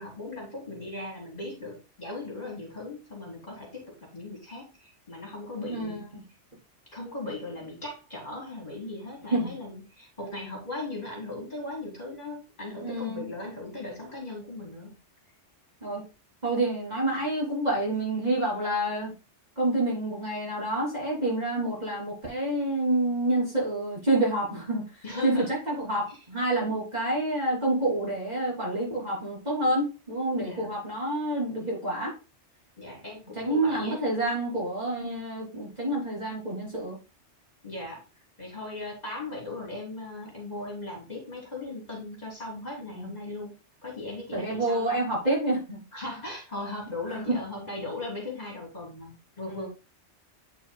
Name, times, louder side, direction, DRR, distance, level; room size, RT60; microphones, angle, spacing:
voice 1, 0.0-6.1 6.9-14.9 25.0-25.5 30.4-30.7 32.8-34.0 37.6-38.0 38.4-43.5 43.8-45.0 45.9-49.7, left 2 dB, 35° left, -3 dB, 3.2 m, -38 dB
voice 2, 5.7-6.2 9.3-9.5 10.2-10.5 12.8-13.3 15.8-16.0 16.4-19.1 19.6-24.8 25.2-32.1 33.4-37.0 42.9-43.1 44.3-45.8 47.1-47.3 49.5-49.7, right 1 dB, 35° right, -4 dB, 3.2 m, -28 dB
8.4 x 6.9 x 2.2 m, 0.30 s
omnidirectional pair, 1.2 m